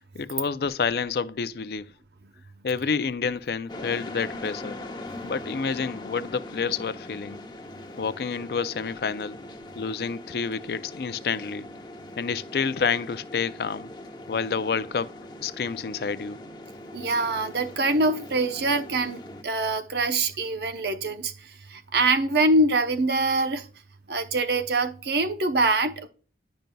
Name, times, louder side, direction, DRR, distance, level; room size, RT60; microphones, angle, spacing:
voice 1, 0.1-1.9 2.6-4.8 5.2-7.4 8.0-9.4 9.8-11.7 12.2-13.9 14.3-15.1 15.4-16.4, left 5 dB, 60° left, 0.4 m, -29 dB
sound 1, 3.7-19.4, left 1 dB, 25° left, 0.8 m, -41 dB
voice 2, 16.9-21.3 21.7-23.7 24.1-26.1, right 2 dB, 65° right, 0.8 m, -24 dB
10.5 x 5.2 x 2.2 m
head